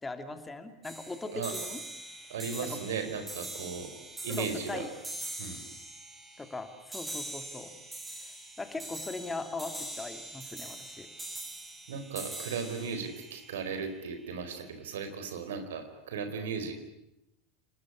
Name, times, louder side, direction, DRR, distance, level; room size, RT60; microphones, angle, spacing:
voice 1, 0.0-1.8 2.7-2.8 4.3-4.9 6.4-7.7 8.2-8.3 8.6-11.1, left 3 dB, 15° left, 8 dB, 2.9 m, -39 dB
sound 1, 0.8-14.3, right 1 dB, 15° right, 7.0 m, -43 dB
voice 2, 2.3-3.9 4.2-4.9 5.4-5.6 11.9-16.8, right 5 dB, 65° right, 7 dB, 4.5 m, -36 dB
28.5 x 20.0 x 9.9 m, 0.90 s
figure-of-eight pair, 80°, 0 cm